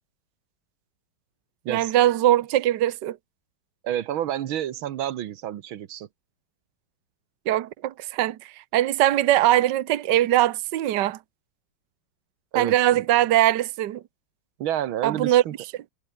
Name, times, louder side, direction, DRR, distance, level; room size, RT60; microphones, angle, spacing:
voice 1, 1.7-3.2 7.5-11.2 12.5-14.0 15.0-15.4, right 13 dB, 65° right, 1.5 m, -21 dB
voice 2, 3.8-6.1 12.5-13.0 14.6-15.5, right 11 dB, 85° right, 1.8 m, -29 dB
omnidirectional pair, 2.2 m